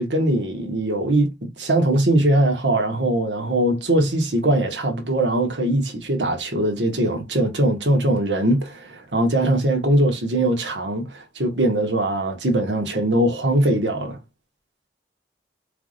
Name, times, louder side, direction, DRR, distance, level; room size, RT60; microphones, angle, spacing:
voice 1, 0.0-14.2, right 1 dB, 90° right, 1.6 m, -21 dB
4.8 x 3.5 x 2.5 m
head